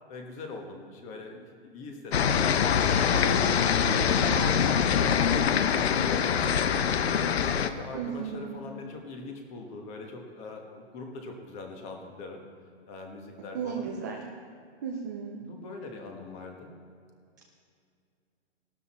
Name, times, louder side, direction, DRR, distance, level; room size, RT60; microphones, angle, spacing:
voice 1, 0.1-3.1 3.4-4.3 5.6-12.4 12.9-13.9 15.4-16.7, left 3 dB, 20° left, 3 dB, 1.3 m, -42 dB
sound 1, 2.1-7.7, left 7 dB, 65° left, 0.9 m, -24 dB
voice 2, 3.1-3.6 4.2-4.6 7.9-8.6 13.5-14.2 14.8-15.4, right 6 dB, 15° right, 0 dB, 0.5 m, -35 dB
16.5 x 12.5 x 4.3 m, 2.3 s
hypercardioid pair, 160°, 34 cm